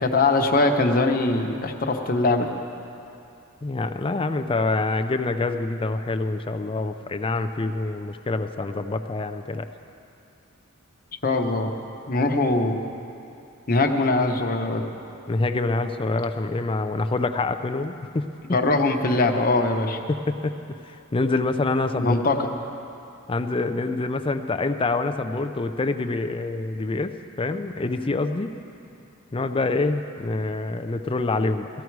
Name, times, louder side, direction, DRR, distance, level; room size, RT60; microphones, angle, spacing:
voice 1, 0.0-2.5 11.2-11.7 12.1-12.8 13.7-14.8 18.5-20.0 22.0-22.5, left 2 dB, 45° left, 3 dB, 1.0 m, -21 dB
voice 2, 3.6-9.7 15.3-18.6 20.1-20.5 20.8-22.1 23.3-27.1 27.4-28.5 29.3-31.7, left 3 dB, 25° left, 8 dB, 0.5 m, -26 dB
18.0 x 14.0 x 4.7 m, 2.7 s
head